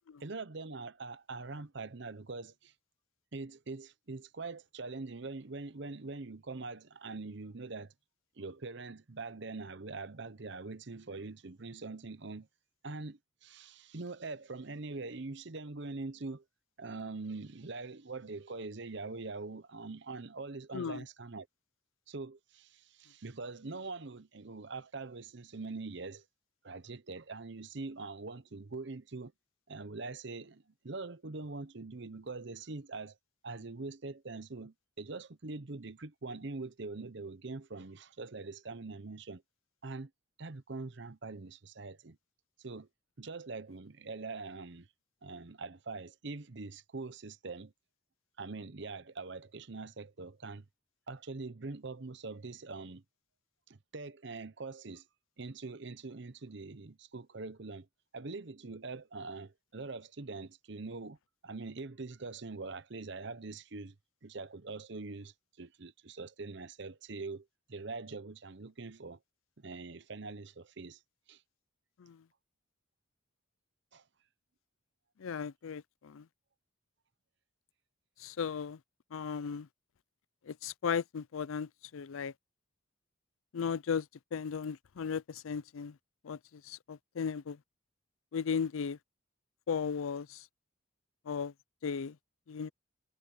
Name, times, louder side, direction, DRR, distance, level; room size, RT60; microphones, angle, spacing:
voice 1, 0.2-2.7 3.3-7.9 8.4-12.5 12.8-16.4 16.8-21.5 22.1-26.3 26.6-29.3 29.7-33.2 33.4-39.4 39.8-40.1 40.4-42.2 42.6-42.9 43.2-44.9 45.2-47.7 48.4-50.7 51.1-53.0 53.7-55.1 55.4-57.9 58.1-61.2 61.4-63.9 64.2-69.2 69.6-71.0 71.3-71.4 73.9-74.0, right 3 dB, 55° right, 0.8 m, -43 dB
voice 2, 20.7-21.0 72.0-72.2 75.2-76.3 78.2-78.8 79.1-79.7 80.5-82.3 83.5-86.0 86.2-87.6 88.3-89.0 89.7-90.5 91.3-91.5 91.8-92.2 92.5-92.7, left 6 dB, 80° left, 0.4 m, -36 dB
head